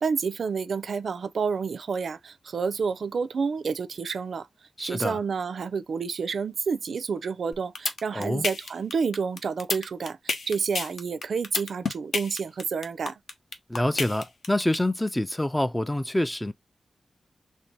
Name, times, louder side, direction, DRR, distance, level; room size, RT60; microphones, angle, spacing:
voice 1, 0.0-4.5 4.8-13.2, right 5 dB, 75° right, 0.4 m, -29 dB
voice 2, 4.8-5.2 8.1-8.5 13.7-16.5, left 1 dB, 10° left, 0.3 m, -26 dB
sound 1, 7.5-14.8, left 3 dB, 70° left, 0.9 m, -29 dB
3.3 x 2.6 x 4.4 m
wide cardioid pair, 175°, 0 cm